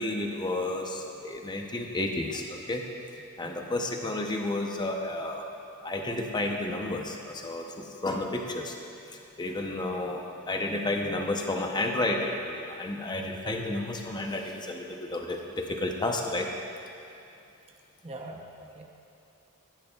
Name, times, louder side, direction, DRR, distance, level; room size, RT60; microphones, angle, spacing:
voice 1, 0.0-2.8 3.4-5.5 5.8-8.7 9.1-16.5, left 2 dB, 20° left, 2 dB, 0.7 m, -31 dB
voice 2, 3.4-3.7 18.0-18.9, right 2 dB, 30° right, 1 dB, 0.7 m, -43 dB
15.0 x 11.0 x 2.3 m, 2.7 s
head